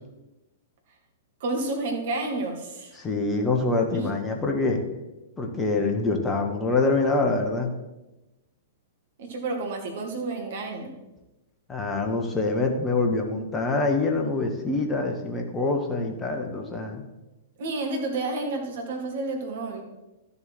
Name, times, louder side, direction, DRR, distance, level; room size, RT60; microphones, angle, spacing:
voice 1, 1.4-2.9 3.9-4.1 9.2-10.9 17.6-19.8, right 2 dB, 50° right, 2 dB, 2.1 m, -30 dB
voice 2, 2.9-4.8 5.4-7.7 11.7-17.0, left 3 dB, 15° left, 2 dB, 1.5 m, -25 dB
12.5 x 7.0 x 4.4 m, 1.0 s
figure-of-eight pair, 105°, 0 cm